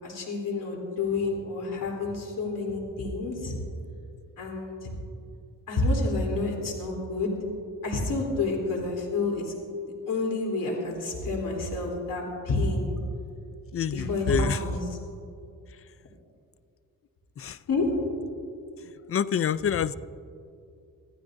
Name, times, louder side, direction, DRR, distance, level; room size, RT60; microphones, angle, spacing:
voice 1, 0.0-3.6 4.4-4.9 5.7-7.3 7.8-9.5 9.8-13.0 13.9-14.8 17.7-17.9, left 3 dB, 70° left, -1 dB, 3.5 m, -29 dB
voice 2, 13.7-14.6 17.4-17.6 19.1-19.9, left 8 dB, 40° left, 16 dB, 0.4 m, -27 dB
25.5 x 15.0 x 2.6 m, 2.5 s
cardioid pair, 100°, 34 cm